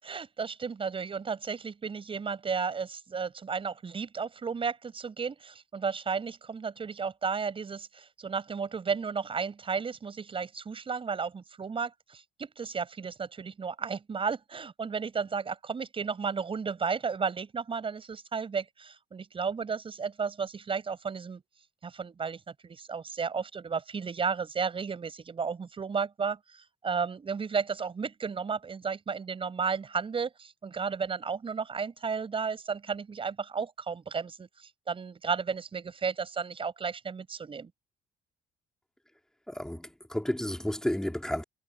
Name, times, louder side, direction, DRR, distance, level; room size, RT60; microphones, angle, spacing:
voice 1, 0.0-21.4 21.8-37.7, right 5 dB, 30° right, 7.0 m, -33 dB
voice 2, 39.5-41.4, left 1 dB, 5° left, 3.8 m, -32 dB
cardioid pair, 110°, 17 cm